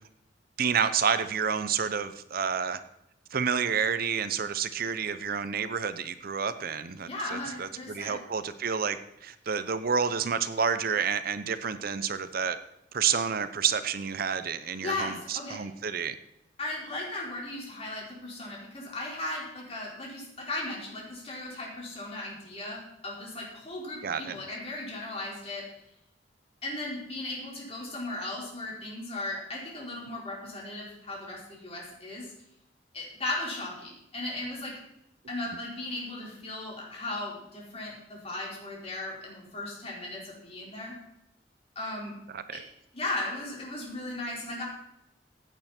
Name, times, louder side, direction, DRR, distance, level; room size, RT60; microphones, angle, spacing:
voice 1, 0.6-2.8 3.3-12.6 12.9-16.2 24.0-24.4 42.3-42.6, right 6 dB, 55° right, 12 dB, 0.6 m, -29 dB
voice 2, 7.1-8.2 14.8-15.6 16.6-25.6 26.6-32.3 32.9-34.7 35.3-40.9 41.7-42.1 42.5-42.6 42.9-44.6, left 2 dB, 35° left, -4 dB, 4.7 m, -36 dB
16.0 x 8.9 x 4.4 m, 0.84 s
head